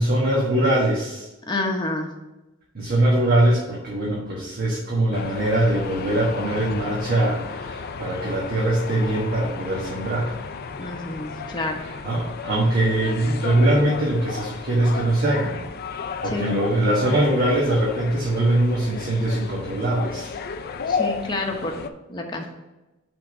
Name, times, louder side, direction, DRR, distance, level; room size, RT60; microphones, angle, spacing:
voice 1, 0.0-1.3 2.7-10.3 12.0-15.5 15.9-20.3, right 1 dB, 45° right, -5 dB, 1.3 m, -22 dB
voice 2, 1.5-2.1 10.8-11.8 16.2-16.6 20.9-22.4, left 2 dB, 20° left, 1 dB, 1.0 m, -29 dB
sound 1, 5.1-21.9, left 5 dB, 50° left, 0.4 m, -33 dB
5.8 x 3.7 x 6.0 m, 1.0 s
head